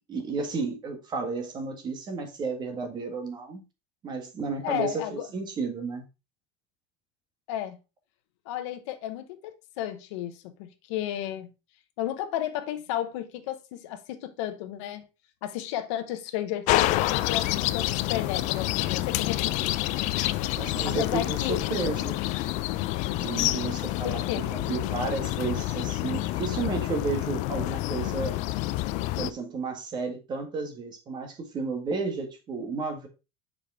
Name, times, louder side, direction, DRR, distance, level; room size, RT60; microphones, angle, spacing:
voice 1, 0.1-3.6 4.0-6.0 20.6-22.2 23.1-28.3 29.2-33.1, right 4 dB, 30° right, 1.6 m, -32 dB
voice 2, 4.6-5.3 7.5-7.8 8.5-11.5 12.0-15.1 15.4-19.8 20.8-21.7 24.0-24.5, left 12 dB, 90° left, 1.0 m, -33 dB
sound 1, 16.7-29.3, left 17 dB, 55° left, 0.4 m, -28 dB
6.9 x 5.1 x 3.5 m
cardioid pair, 155°, 15 cm